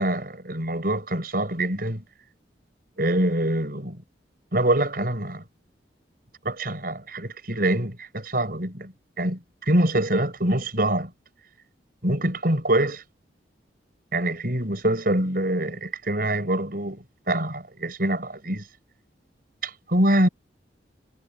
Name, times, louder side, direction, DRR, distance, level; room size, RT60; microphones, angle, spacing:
voice 1, 0.0-2.0 3.0-4.0 4.5-5.4 6.4-8.9 9.2-9.4 9.7-11.1 12.0-13.0 14.1-18.6 19.6-20.3, right 1 dB, 50° right, 6.0 m, -24 dB
head